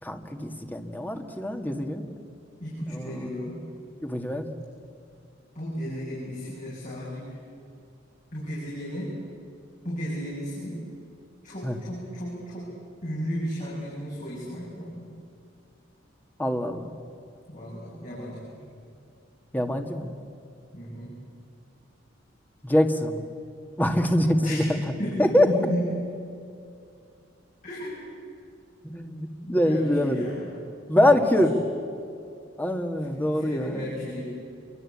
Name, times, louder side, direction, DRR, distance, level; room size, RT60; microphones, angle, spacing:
voice 1, 0.0-2.1 2.9-3.3 4.0-4.5 11.6-11.8 16.4-16.9 19.5-20.1 22.6-23.2 23.8-24.6 25.2-25.5 28.8-30.3 30.9-31.5 32.6-33.9, left 1 dB, 10° left, 4 dB, 2.0 m, -24 dB
voice 2, 2.6-3.6 5.5-7.4 8.3-9.1 9.8-10.8 11.4-12.7 13.0-15.1 17.5-18.6 20.7-21.1 24.4-24.7 25.0-25.9 27.6-28.0 29.4-30.5 31.0-31.1 33.0-34.2, equal, 45° left, -6 dB, 7.7 m, -34 dB
27.5 x 24.0 x 8.7 m, 2.5 s
head